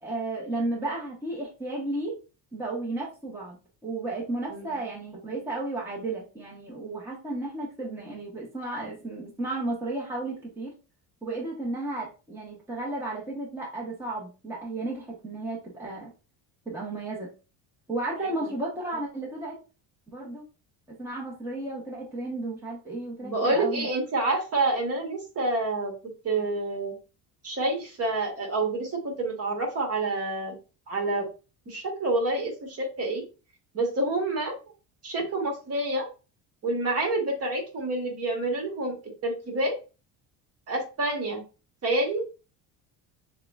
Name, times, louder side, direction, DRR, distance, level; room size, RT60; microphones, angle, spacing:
voice 1, 0.0-2.1 2.5-10.7 11.2-16.1 16.7-17.3 17.9-19.6 20.1-20.5 21.0-23.9, right 2 dB, 5° right, -4 dB, 0.9 m, -33 dB
voice 2, 23.2-25.9 26.2-26.9 27.4-30.5 30.9-31.3 31.7-33.2 33.7-34.5 35.0-36.1 36.6-39.0 39.2-39.8 40.7-41.4 41.8-42.2, right 2 dB, 35° right, 1 dB, 1.3 m, -28 dB
6.5 x 2.2 x 2.3 m, 0.33 s
cardioid pair, 145°, 41 cm